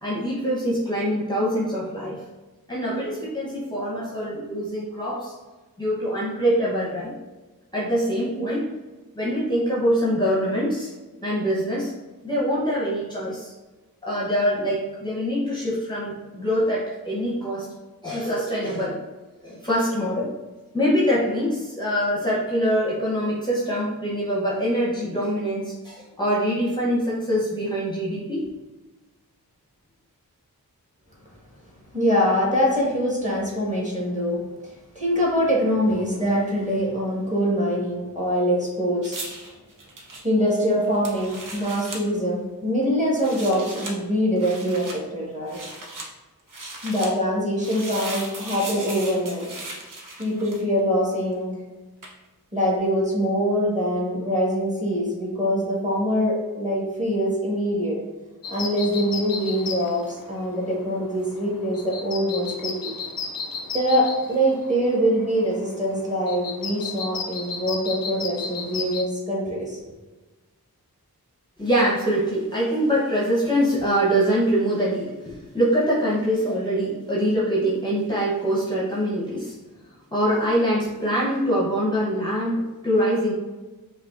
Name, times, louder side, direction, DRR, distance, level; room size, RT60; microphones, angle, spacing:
voice 1, 0.0-2.3 2.7-5.3 5.8-7.1 7.7-8.7 9.1-10.9 11.2-11.9 12.2-13.5 14.0-17.7 18.0-19.0 19.4-20.3 20.7-28.5 71.6-79.6 80.1-83.3, equal, 10° left, -7 dB, 0.7 m, -24 dB
voice 2, 31.9-34.4 34.9-39.2 40.2-44.9 45.1-45.6 46.8-49.5 50.2-51.5 52.5-58.0 58.5-62.9 63.7-69.8, equal, 20° right, -5 dB, 1.4 m, -24 dB
sound 1, 39.0-42.0 43.1-43.9 44.4-45.0 45.5-46.1 46.5-47.1 47.6-50.8 52.0-52.2, right 2 dB, 60° right, 0.8 m, -37 dB
sound 2, 58.4-69.0, left 5 dB, 65° left, 0.5 m, -35 dB
5.0 x 2.4 x 2.4 m, 1.2 s
wide cardioid pair, 65°, 37 cm